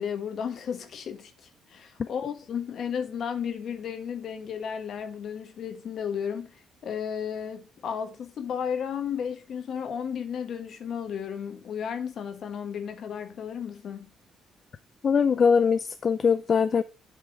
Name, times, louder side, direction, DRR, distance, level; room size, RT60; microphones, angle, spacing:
voice 1, 0.0-14.1, left 7 dB, 65° left, 1.3 m, -34 dB
voice 2, 15.0-16.8, left 6 dB, 45° left, 0.4 m, -22 dB
8.2 x 3.5 x 6.2 m
cardioid pair, 90°, 0 cm